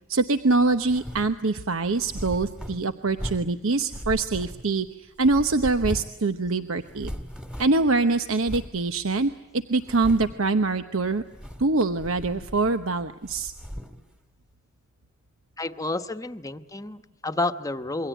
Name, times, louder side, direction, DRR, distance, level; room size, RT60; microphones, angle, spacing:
voice 1, 0.1-4.9 5.2-7.1 7.6-11.2 11.6-13.5, right 3 dB, 85° right, 9 dB, 1.0 m, -24 dB
sound 1, 0.8-1.4 1.9-3.6 3.9-4.9 5.2-6.2 6.5-6.6 6.8-7.9 8.4-8.8 9.3-9.4 9.8-10.5 11.2-11.7 12.0-12.9 13.2-14.0, equal, 5° right, 1.8 m, -37 dB
voice 2, 15.6-18.1, left 2 dB, 15° left, 8 dB, 1.1 m, -30 dB
27.5 x 23.5 x 9.2 m, 0.98 s
head